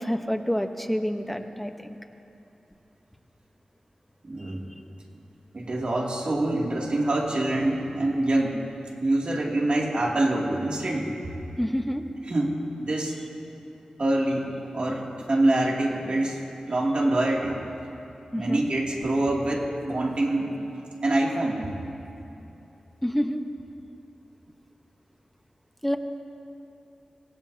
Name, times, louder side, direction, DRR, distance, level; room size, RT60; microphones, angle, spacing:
voice 1, 0.0-2.0 4.7-4.8 11.6-12.0 18.3-18.6 23.0-23.4 25.8-26.0, equal, 5° left, 5 dB, 1.0 m, -28 dB
voice 2, 4.2-4.7 5.5-8.7 9.0-11.2 12.3-13.2 14.0-16.4 16.7-17.6 18.3-20.6 21.0-21.7, right 1 dB, 55° right, -2 dB, 2.7 m, -25 dB
25.5 x 18.0 x 2.8 m, 2.9 s
wide cardioid pair, 75°, 2 cm